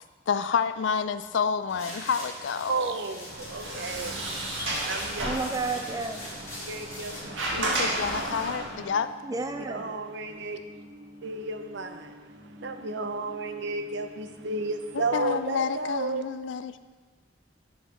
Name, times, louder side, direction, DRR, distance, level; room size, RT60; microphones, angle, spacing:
voice 1, 0.3-2.9 7.6-9.1 15.1-16.8, left 6 dB, 70° left, 0.4 m, -29 dB
sound 1, 1.7-7.2, left 1 dB, 15° left, 2.7 m, -41 dB
voice 2, 2.7-4.2 4.8-5.4 6.6-7.9 9.7-10.6 11.2-16.2, right 3 dB, 65° right, 0.6 m, -33 dB
Sliding door, 3.3-8.8, right 1 dB, 85° right, 1.7 m, -33 dB
voice 3, 5.2-6.2 9.2-9.8, right 3 dB, 20° right, 0.5 m, -31 dB
sound 2, 8.2-15.4, equal, 45° right, 1.1 m, -49 dB
7.1 x 6.3 x 5.6 m
head